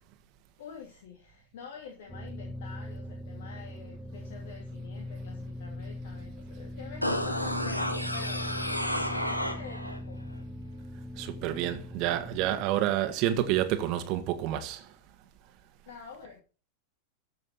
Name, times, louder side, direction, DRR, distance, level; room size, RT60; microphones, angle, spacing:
voice 1, 0.6-8.4 9.1-10.2 15.9-16.4, left 6 dB, 55° left, 2.9 m, -47 dB
sound 1, 2.1-12.6, left 1 dB, 5° left, 1.6 m, -40 dB
sound 2, 7.0-10.0 10.3-10.4, equal, 85° left, 1.8 m, -31 dB
voice 2, 11.2-14.9, right 12 dB, 40° right, 1.8 m, -29 dB
14.5 x 7.3 x 4.3 m
figure-of-eight pair, 90°, 0 cm